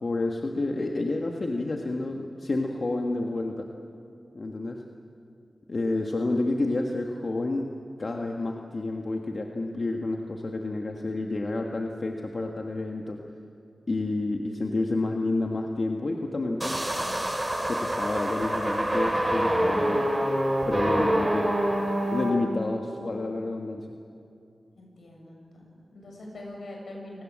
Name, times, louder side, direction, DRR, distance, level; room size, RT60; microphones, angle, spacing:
voice 1, 0.0-3.7 4.3-4.8 5.7-7.7 8.0-13.2 13.9-16.8 17.6-20.1 20.7-21.7 22.1-23.9, left 2 dB, 55° left, 2 dB, 1.6 m, -29 dB
sound 1, 16.6-22.3, right 1 dB, 20° right, 6.2 m, -26 dB
voice 2, 24.7-27.2, left 1 dB, 80° left, -1 dB, 7.4 m, -43 dB
29.0 x 19.0 x 7.6 m, 2.5 s
cardioid pair, 60°, 0 cm